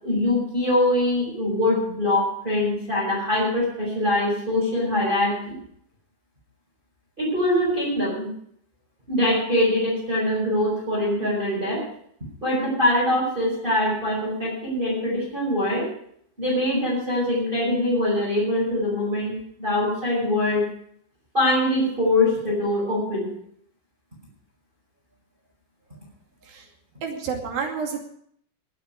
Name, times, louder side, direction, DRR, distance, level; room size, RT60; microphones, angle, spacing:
voice 1, 0.0-5.5 7.2-8.3 9.1-11.8 12.4-15.9 16.4-20.7 21.3-23.3, left 1 dB, 15° right, -6 dB, 5.4 m, -23 dB
voice 2, 27.0-28.1, right 5 dB, 70° right, 2 dB, 4.3 m, -29 dB
20.0 x 9.1 x 5.3 m, 0.65 s
omnidirectional pair, 4.3 m